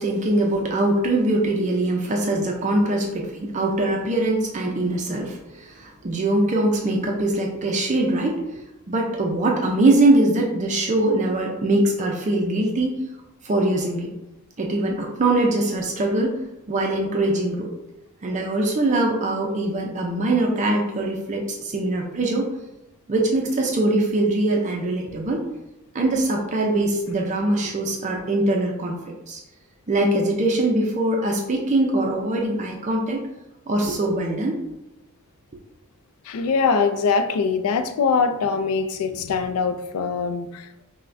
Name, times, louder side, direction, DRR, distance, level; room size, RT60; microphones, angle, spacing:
voice 1, 0.0-13.0 13.4-14.1 14.6-16.4 16.7-17.7 18.2-22.5 23.1-25.4 25.9-29.4 29.9-33.2 33.7-34.6, right 2 dB, 35° right, 0 dB, 0.4 m, -22 dB
voice 2, 36.3-40.8, left 5 dB, 90° left, 9 dB, 0.4 m, -23 dB
5.6 x 2.1 x 2.5 m, 0.93 s
head